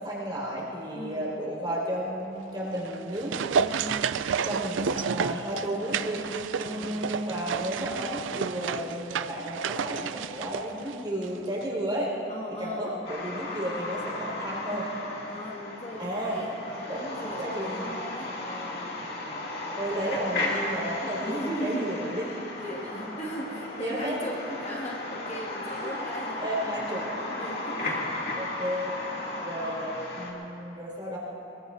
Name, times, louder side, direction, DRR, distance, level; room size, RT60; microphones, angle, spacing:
voice 1, 0.0-4.0 4.4-6.2 6.6-12.1 12.6-14.9 16.0-16.4 16.9-17.9 19.1-19.4 19.8-22.4 22.8-23.0 23.4-23.5 23.8-24.5 25.8-25.9 26.4-27.5 27.8-27.9 28.3-28.9 29.4-31.2, right 1 dB, 25° right, -7 dB, 4.7 m, -33 dB
voice 2, 1.0-1.3 6.5-7.1 12.3-13.0 15.3-19.1 21.2-21.9 22.6-26.4 27.4-28.3 29.2-29.5, equal, 35° left, -5 dB, 1.9 m, -38 dB
sound 1, 2.7-11.4 11.6-11.7, right 6 dB, 90° right, 0.4 m, -31 dB
sound 2, 13.0-30.3, left 2 dB, 55° left, 2.4 m, -35 dB
24.0 x 22.5 x 2.7 m, 3.0 s
head